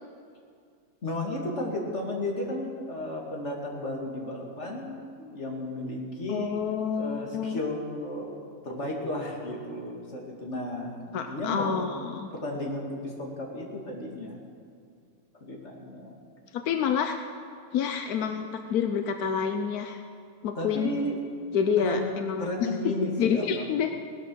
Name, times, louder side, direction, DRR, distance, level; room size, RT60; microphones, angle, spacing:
voice 1, 1.0-6.5 7.0-8.4 8.6-11.7 12.3-14.4 15.4-16.2 20.5-21.1 21.8-22.1 22.4-23.7, left 1 dB, 30° left, -1 dB, 2.5 m, -33 dB
voice 2, 6.3-7.6 11.1-12.3 16.5-17.2 17.7-20.0 20.4-20.9 21.5-22.5 23.2-23.9, left 7 dB, 70° left, 6 dB, 0.9 m, -28 dB
18.0 x 12.0 x 6.3 m, 2.3 s
omnidirectional pair, 2.4 m